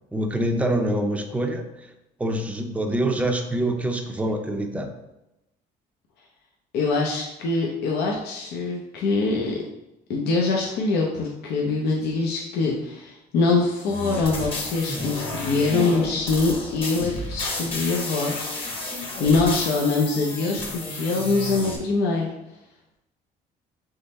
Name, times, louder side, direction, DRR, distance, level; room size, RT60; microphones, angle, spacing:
voice 1, 0.1-1.7 2.2-4.9, right 1 dB, 10° right, 4 dB, 0.5 m, -25 dB
voice 2, 6.7-9.6 10.1-22.3, left 3 dB, 75° left, -1 dB, 0.7 m, -24 dB
sound 1, 13.8-21.8, left 2 dB, 30° left, 1.0 m, -32 dB
3.8 x 3.2 x 4.1 m, 0.90 s
cardioid pair, 110°, 17 cm